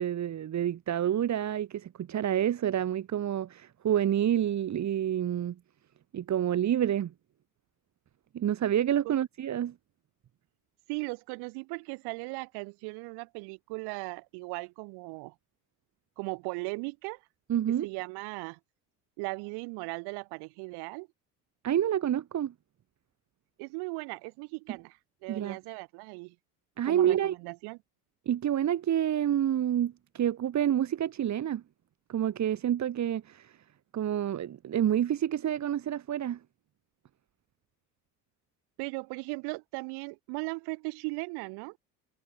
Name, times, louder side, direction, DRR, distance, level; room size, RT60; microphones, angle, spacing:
voice 1, 0.0-5.5 6.1-7.1 8.3-9.7 17.5-17.9 21.6-22.5 25.3-25.6 26.8-27.4 28.2-31.6 32.1-33.5 33.9-36.4, right 10 dB, 35° right, 3.3 m, -28 dB
voice 2, 10.9-15.3 16.2-17.2 17.8-18.6 19.2-21.1 23.6-26.4 26.8-27.8 38.8-41.8, right 30 dB, 55° right, 4.1 m, -38 dB
figure-of-eight pair, 65°, 46 cm